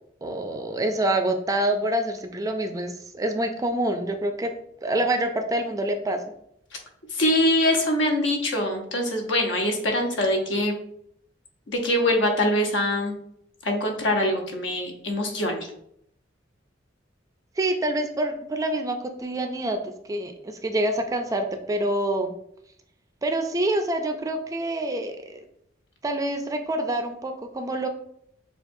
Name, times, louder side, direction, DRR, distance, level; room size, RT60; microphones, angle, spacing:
voice 1, 0.2-4.5 4.8-6.2 17.6-22.3 23.2-25.4 26.0-27.9, right 1 dB, 20° right, 6 dB, 0.3 m, -26 dB
voice 2, 7.1-10.7 11.7-13.2 13.6-15.7, left 1 dB, 80° left, 2 dB, 0.9 m, -23 dB
6.8 x 2.3 x 2.6 m, 0.72 s
head